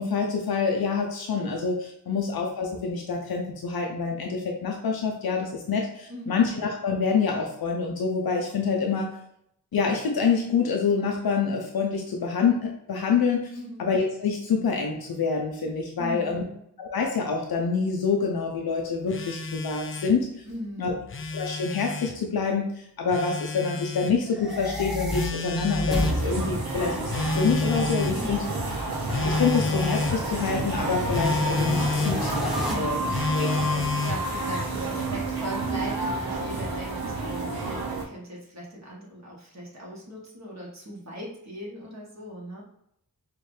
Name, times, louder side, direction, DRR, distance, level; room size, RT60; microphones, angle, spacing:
voice 1, 0.0-9.1 9.7-16.4 16.8-20.4 20.8-20.9 21.3-28.4 29.2-32.5 32.7-33.0 33.3-33.6, left 5 dB, 80° left, 1 dB, 0.6 m, -26 dB
voice 2, 6.1-6.4 13.5-13.9 16.0-16.6 20.4-21.1 25.6-25.7 28.1-28.6 32.6-42.6, equal, 50° right, -4 dB, 1.5 m, -39 dB
Telephone, 19.1-20.2 20.9-22.2 23.1-24.2 25.1-26.2 27.1-28.2 29.1-30.2 31.1-32.2 33.1-34.3, left 4 dB, 35° left, 0.4 m, -29 dB
sound 1, 24.2-32.7, equal, ahead, 1.1 m, -33 dB
sound 2, 25.9-38.0, right 2 dB, 90° right, 0.9 m, -30 dB
4.5 x 2.5 x 3.2 m, 0.75 s
cardioid pair, 40°, 36 cm